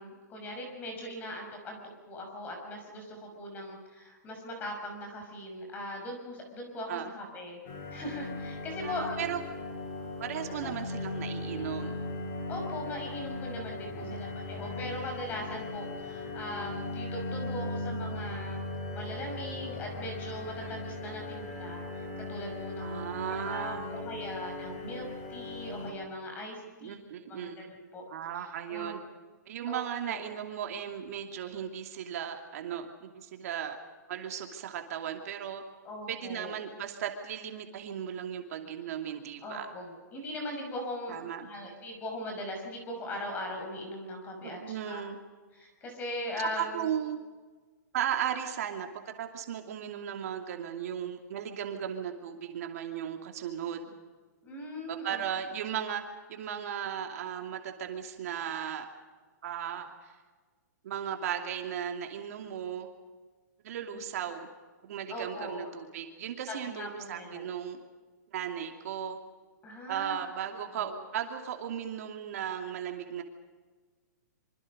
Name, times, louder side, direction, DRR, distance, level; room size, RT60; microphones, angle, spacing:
voice 1, 0.0-1.8 2.1-7.6 7.9-9.2 10.6-10.7 12.5-18.6 18.9-25.0 25.3-27.0 27.3-28.0 28.7-28.9 29.7-30.2 35.8-36.5 39.4-44.6 44.9-45.1 45.5-46.9 54.4-55.2 63.9-64.0 65.1-65.7 66.5-67.5 69.6-70.2 70.8-70.9, left 1 dB, 15° left, 2 dB, 6.1 m, -40 dB
sound 1, 7.6-25.9, left 2 dB, 35° left, 7.5 m, -38 dB
voice 2, 8.8-9.4 10.2-12.0 14.1-14.3 20.6-20.7 22.8-24.2 26.8-27.7 28.1-29.0 29.5-33.8 34.1-35.6 36.1-39.7 41.1-41.5 44.4-45.2 46.4-47.2 47.9-53.9 54.9-56.0 56.3-58.9 59.4-60.1 60.8-62.9 63.6-64.5 64.8-67.8 68.3-69.2 69.9-73.2, right 9 dB, 50° right, 3 dB, 2.7 m, -36 dB
26.0 x 25.5 x 5.3 m, 1.4 s
hypercardioid pair, 160°, 10 cm